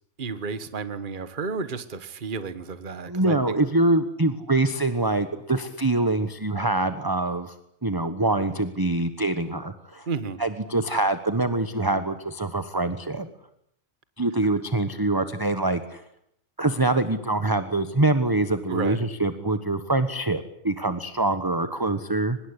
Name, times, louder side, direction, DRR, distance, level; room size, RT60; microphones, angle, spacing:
voice 1, 0.2-3.6 10.1-10.4 18.7-19.0, right 5 dB, 40° right, 13 dB, 1.5 m, -32 dB
voice 2, 3.1-7.5 7.8-10.1 10.4-13.3 14.2-16.0 16.6-22.4, right 2 dB, 15° right, 11 dB, 1.2 m, -24 dB
24.5 x 21.0 x 9.8 m, 0.74 s
omnidirectional pair, 1.4 m